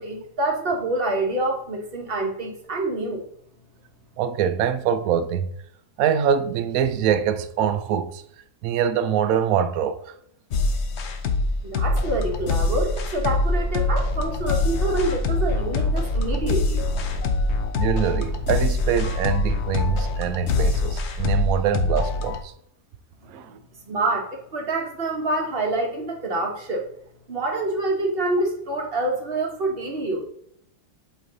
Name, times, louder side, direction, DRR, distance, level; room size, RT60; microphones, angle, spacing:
voice 1, 0.0-3.3 11.6-16.9 23.9-26.9 27.3-30.3, right 2 dB, 40° right, 1.0 m, -26 dB
voice 2, 4.2-5.5 6.0-8.2 8.6-10.0 17.8-22.5 23.3-23.6, right 8 dB, 75° right, 0.8 m, -24 dB
sound 1, 10.5-22.4, left 3 dB, 75° left, 0.6 m, -24 dB
sound 2, 11.8-18.6, equal, 35° left, 1.7 m, -32 dB
8.0 x 3.2 x 3.9 m
omnidirectional pair, 2.0 m